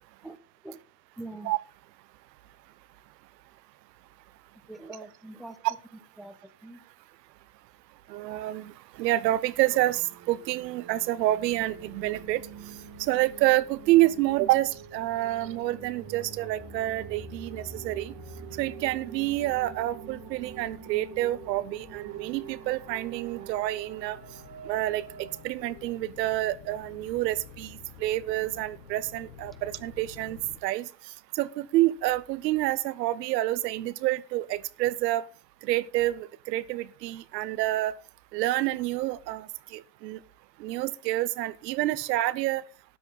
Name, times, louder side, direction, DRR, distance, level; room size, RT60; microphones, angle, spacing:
voice 1, 1.2-1.5 4.7-5.6 6.2-6.9, right 2 dB, ahead, 1.1 m, -43 dB
voice 2, 8.1-12.4 13.0-18.1 18.6-24.2 24.6-30.9 31.3-35.3 35.6-37.9 38.3-40.2 40.6-42.6, right 16 dB, 80° right, 0.8 m, -28 dB
sound 1, 9.5-25.5, right 7 dB, 45° right, 1.9 m, -46 dB
sound 2, 11.4-30.6, left 6 dB, 75° left, 2.4 m, -52 dB
13.0 x 8.8 x 3.9 m
hypercardioid pair, 105°, 49 cm